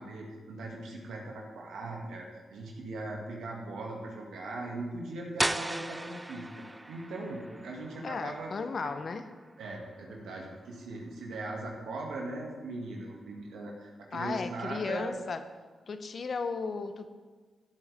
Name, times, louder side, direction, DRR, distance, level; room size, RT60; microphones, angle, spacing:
voice 1, 0.0-6.5 6.9-8.5 9.6-15.1, right 2 dB, 80° right, -1 dB, 2.2 m, -39 dB
sound 1, 5.4-11.0, right 1 dB, 20° right, 0.4 m, -38 dB
voice 2, 8.0-9.2 14.1-15.4 15.9-17.1, left 4 dB, 60° left, 9 dB, 0.9 m, -35 dB
16.0 x 8.1 x 3.6 m, 1.4 s
supercardioid pair, 45°, 0 cm